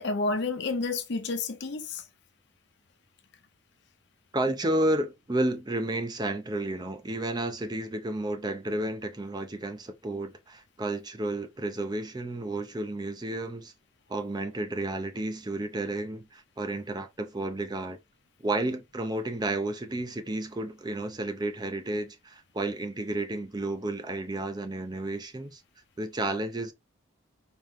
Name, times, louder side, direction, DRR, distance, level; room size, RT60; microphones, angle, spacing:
voice 1, 0.0-2.0, left 3 dB, 55° left, 0.8 m, -30 dB
voice 2, 4.3-13.7 14.1-18.0 18.4-25.6 26.0-26.7, right 1 dB, 20° right, 0.5 m, -31 dB
4.9 x 3.0 x 3.4 m
head